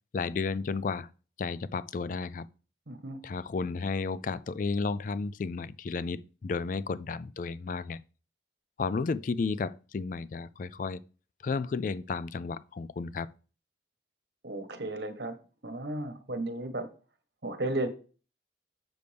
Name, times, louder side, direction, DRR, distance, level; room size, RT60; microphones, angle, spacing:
voice 1, 0.1-1.1 1.4-2.5 3.2-8.0 8.8-11.0 11.4-13.3, left 4 dB, 45° left, 0.3 m, -32 dB
voice 2, 2.9-3.2 14.4-15.4 15.6-16.9 17.4-17.9, right 1 dB, 60° right, 1.3 m, -34 dB
7.7 x 6.8 x 3.4 m
head